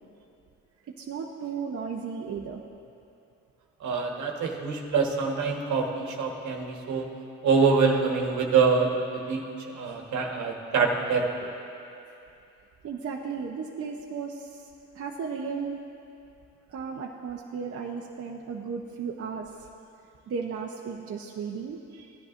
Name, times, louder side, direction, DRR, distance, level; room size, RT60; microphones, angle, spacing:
voice 1, 1.0-2.7 9.9-10.0 12.8-14.7 14.9-15.8 16.7-19.7 20.3-22.2, right 5 dB, 50° right, -1 dB, 0.8 m, -35 dB
voice 2, 3.8-7.0 7.4-9.4 9.7-11.5, right 5 dB, 70° right, 1 dB, 1.4 m, -25 dB
16.5 x 10.5 x 2.5 m, 2.7 s
cardioid pair, 90°, 30 cm